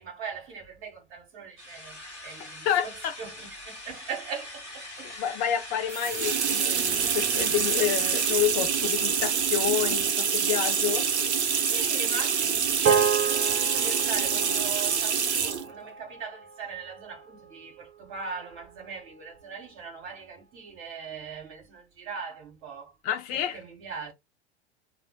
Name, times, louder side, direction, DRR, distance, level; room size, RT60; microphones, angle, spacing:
voice 1, 0.0-5.1 6.1-6.2 11.7-22.9 23.3-24.1, right 5 dB, 45° right, 1.8 m, -40 dB
sound 1, 1.6-8.3, left 1 dB, 90° left, 1.1 m, -42 dB
voice 2, 2.6-3.1 5.0-11.1 23.0-23.6, left 10 dB, 25° left, 0.4 m, -29 dB
sound 2, 5.9-15.7, right 7 dB, 75° right, 0.6 m, -26 dB
sound 3, 12.8-17.4, right 7 dB, 25° right, 0.6 m, -30 dB
3.0 x 2.5 x 2.3 m
figure-of-eight pair, 85°, 34 cm